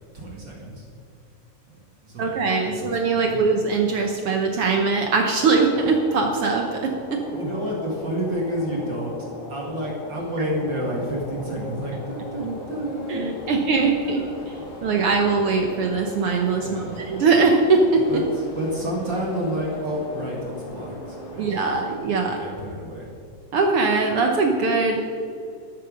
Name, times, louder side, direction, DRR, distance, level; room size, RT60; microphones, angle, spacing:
voice 1, 0.1-0.9 1.7-1.8 2.0-2.3 2.7-3.4 7.3-14.7 16.6-17.0 18.1-21.8 22.2-23.1, equal, 40° right, -2 dB, 2.3 m, -30 dB
voice 2, 2.2-7.2 13.1-13.2 13.5-14.2 14.8-18.0 21.4-22.4 23.5-25.0, right 4 dB, 65° right, 3 dB, 1.4 m, -21 dB
sound 1, 5.4-22.0, left 1 dB, 70° left, 3.7 m, -38 dB
13.0 x 11.5 x 5.2 m, 2.6 s
omnidirectional pair, 3.7 m